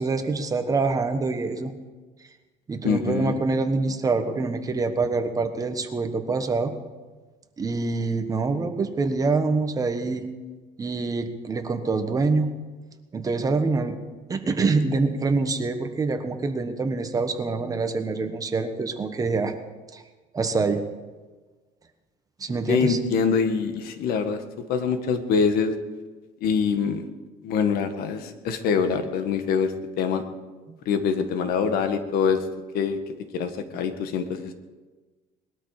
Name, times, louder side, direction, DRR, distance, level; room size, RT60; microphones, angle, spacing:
voice 1, 0.0-1.7 2.7-6.7 7.6-10.3 10.8-12.5 13.1-14.0 14.3-19.5 19.9-20.0 20.3-20.8 22.4-23.0 30.7-30.8, right 3 dB, 20° right, 7 dB, 1.3 m, -25 dB
voice 2, 2.8-3.4 22.7-24.4 24.7-25.7 26.4-27.0 27.4-30.2 30.8-32.4 32.7-33.0 33.3-34.5, left 6 dB, 70° left, 8 dB, 1.6 m, -24 dB
20.5 x 12.5 x 4.9 m, 1.3 s
cardioid pair, 145°, 16 cm